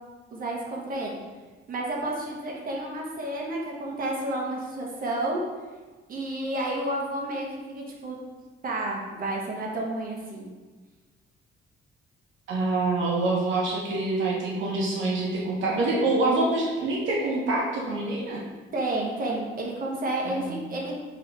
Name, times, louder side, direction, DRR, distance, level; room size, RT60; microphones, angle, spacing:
voice 1, 0.3-1.2 1.7-5.4 6.1-8.2 8.6-10.5 18.7-21.0, right 1 dB, 45° right, -2 dB, 1.0 m, -31 dB
voice 2, 12.5-18.4 20.3-20.6, right 2 dB, 75° right, -4 dB, 0.9 m, -26 dB
3.8 x 3.0 x 4.5 m, 1.3 s
cardioid pair, 90°, 20 cm